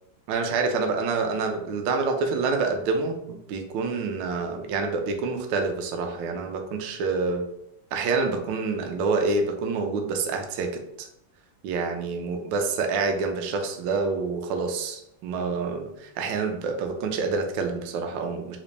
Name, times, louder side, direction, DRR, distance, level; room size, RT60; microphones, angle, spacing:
voice 1, 0.3-7.5 7.9-11.1 11.6-18.6, right 4 dB, 75° right, 4 dB, 1.2 m, -27 dB
3.9 x 2.5 x 3.2 m, 0.81 s
omnidirectional pair, 2.3 m